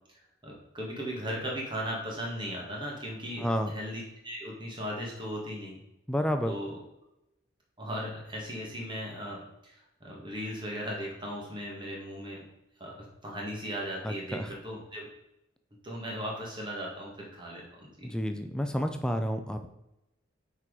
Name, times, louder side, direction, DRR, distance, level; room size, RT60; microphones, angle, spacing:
voice 1, 0.4-5.8 6.4-6.8 7.8-12.4 12.8-15.1 15.8-18.1, equal, 25° right, -2 dB, 1.7 m, -37 dB
voice 2, 3.4-3.7 6.1-6.5 14.0-14.5 18.0-19.7, equal, 5° left, 6 dB, 0.4 m, -30 dB
6.0 x 4.6 x 4.8 m, 0.89 s
head